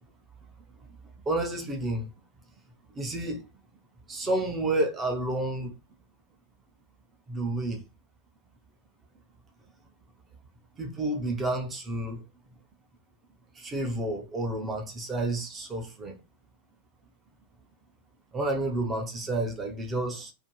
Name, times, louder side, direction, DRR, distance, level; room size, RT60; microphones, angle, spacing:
voice 1, 1.3-2.1 2.9-3.4 4.1-5.7 7.3-7.8 10.8-12.2 13.6-16.2 18.3-20.3, right 2 dB, 15° right, 0.5 m, -30 dB
2.5 x 2.4 x 2.9 m
supercardioid pair, 170°, 0 cm